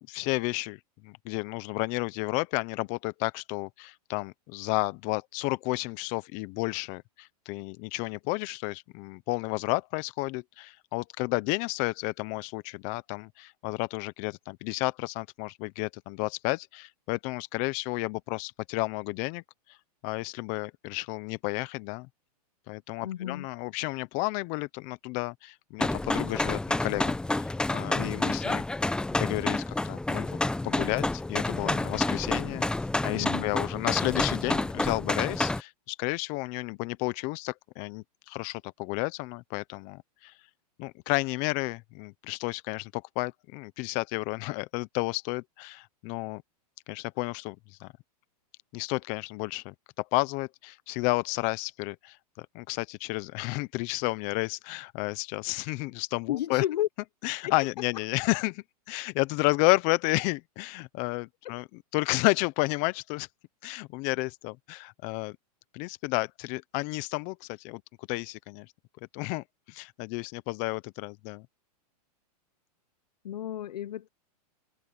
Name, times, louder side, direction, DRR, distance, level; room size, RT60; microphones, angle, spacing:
voice 1, 0.0-19.4 20.0-22.1 22.7-28.6 29.1-30.3 30.6-32.7 33.0-40.3 40.8-46.4 46.9-47.9 48.7-56.6 57.2-61.6 61.9-63.3 63.6-65.4 65.7-68.7 69.1-71.5, left 24 dB, 40° left, 0.9 m, -32 dB
voice 2, 23.0-23.5 33.1-33.5 56.3-56.9 57.4-57.5 61.4-61.6 73.2-74.1, left 12 dB, 75° left, 1.1 m, -32 dB
sound 1, 25.8-35.6, left 2 dB, 5° left, 1.1 m, -29 dB
hypercardioid pair, 140°, 21 cm